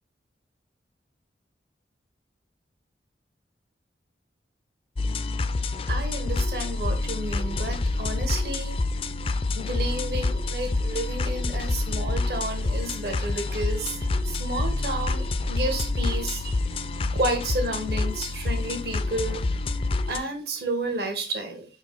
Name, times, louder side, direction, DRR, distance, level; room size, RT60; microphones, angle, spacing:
sound 1, 5.0-20.2, left 2 dB, 30° left, 0.4 m, -27 dB
voice 1, 5.9-8.7 9.5-16.5 17.1-19.4 20.1-21.7, right 1 dB, 60° right, 1.4 m, -31 dB
5.1 x 4.9 x 3.8 m
head